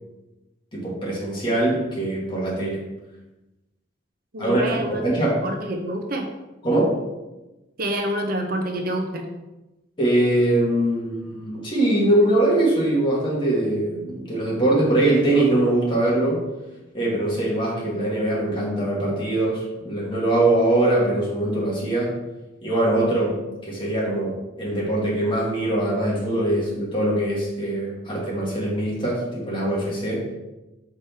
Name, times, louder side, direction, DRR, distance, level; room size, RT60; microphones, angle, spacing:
voice 1, 0.7-2.8 4.4-5.4 6.6-7.0 10.0-16.4 16.9-22.2 22.6-30.3, right 1 dB, 25° left, -5 dB, 2.1 m, -22 dB
voice 2, 4.3-6.3 7.8-9.3, right 1 dB, 50° right, 3 dB, 0.7 m, -27 dB
6.3 x 4.7 x 4.4 m, 1.0 s
head